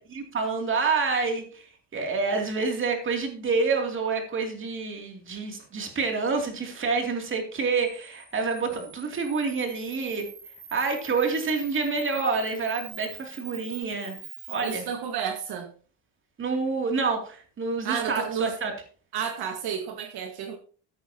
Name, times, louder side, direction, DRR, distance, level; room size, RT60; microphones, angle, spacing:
voice 1, 0.1-1.6 1.9-10.3 10.7-14.2 14.5-14.8 16.4-18.7, right 4 dB, 30° right, 3 dB, 2.8 m, -28 dB
Camera, 7.7-14.7, right 6 dB, 45° right, 6.1 m, -45 dB
voice 2, 14.6-15.7 17.8-18.5 19.1-20.6, right 7 dB, 60° right, 5 dB, 1.8 m, -31 dB
14.5 x 10.0 x 2.9 m, 0.40 s
cardioid pair, 160°, 42 cm